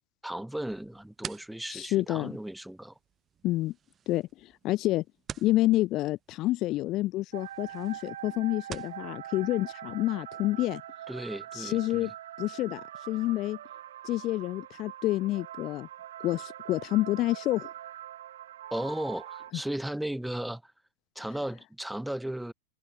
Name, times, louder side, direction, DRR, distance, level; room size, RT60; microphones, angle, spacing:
voice 1, 0.2-2.9 11.1-12.1 18.7-20.7 21.2-22.5, right 1 dB, 5° right, 2.3 m, -35 dB
sound 1, 0.7-9.0, right 8 dB, 30° right, 7.6 m, -48 dB
voice 2, 1.7-2.3 3.4-3.7 4.1-5.0 5.4-10.8 11.5-12.1 12.4-13.6 14.0-15.9 16.2-17.7, left 17 dB, 45° left, 0.6 m, -28 dB
sound 2, 7.3-19.5, right 12 dB, 70° right, 2.6 m, -43 dB
figure-of-eight pair, 90°, 0 cm